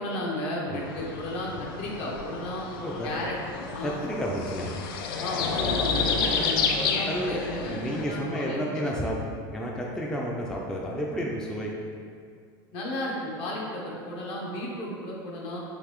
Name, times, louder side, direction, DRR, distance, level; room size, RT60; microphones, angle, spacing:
voice 1, 0.0-2.7 3.0-4.0 5.2-8.8 12.7-15.6, left 1 dB, 60° left, -3 dB, 0.9 m, -33 dB
sound 1, 0.7-8.0, left 5 dB, 85° left, 0.4 m, -30 dB
voice 2, 3.8-4.7 7.1-9.2 9.5-11.7, equal, 5° left, -2 dB, 0.3 m, -31 dB
3.9 x 2.5 x 3.0 m, 2.2 s
supercardioid pair, 110°, 12 cm